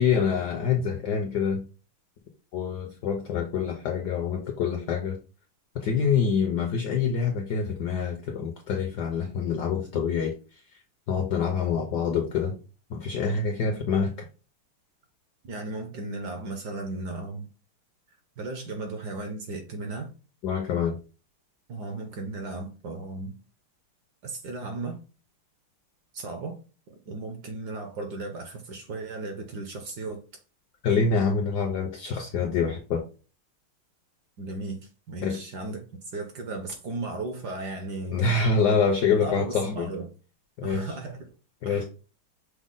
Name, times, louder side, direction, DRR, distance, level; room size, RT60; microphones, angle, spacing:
voice 1, 0.0-1.7 2.5-5.2 5.7-10.3 11.1-12.6 12.9-14.1 20.4-21.0 30.8-33.0 35.2-35.4 38.1-39.9 40.6-40.9 41.6-41.8, left 5 dB, 75° left, 3 dB, 0.9 m, -26 dB
voice 2, 15.4-17.5 18.4-20.1 21.7-23.4 24.2-25.0 26.1-26.6 27.1-30.2 34.4-35.8 36.1-38.5 39.2-40.1 40.6-41.3 41.6-41.8, right 2 dB, 70° right, 5 dB, 1.0 m, -35 dB
6.1 x 2.0 x 3.7 m, 0.35 s
omnidirectional pair, 2.4 m